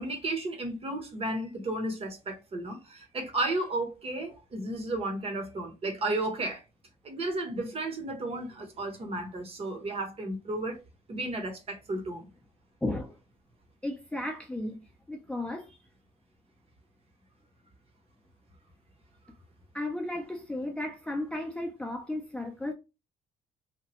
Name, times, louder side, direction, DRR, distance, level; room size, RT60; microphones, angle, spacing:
voice 1, 0.0-6.6 7.0-10.8 11.1-12.3, right 2 dB, 35° right, 0.9 m, -33 dB
voice 2, 12.8-13.2 13.8-14.8 15.1-15.7 19.7-22.7, left 1 dB, 5° left, 0.5 m, -34 dB
2.9 x 2.3 x 3.0 m
cardioid pair, 110°, 17 cm